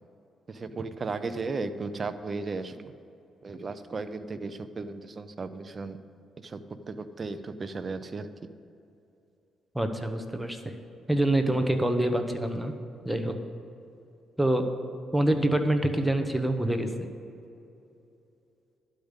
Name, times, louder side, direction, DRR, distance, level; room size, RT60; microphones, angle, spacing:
voice 1, 0.5-2.9 3.4-6.0 6.4-6.6 6.9-8.3, right 3 dB, 35° right, 11 dB, 0.6 m, -35 dB
voice 2, 9.7-10.7 11.1-12.7 13.0-13.4 14.4-14.7 15.1-17.1, right 1 dB, 5° right, 6 dB, 1.0 m, -26 dB
12.0 x 5.2 x 8.1 m, 2.7 s
cardioid pair, 90°, 0 cm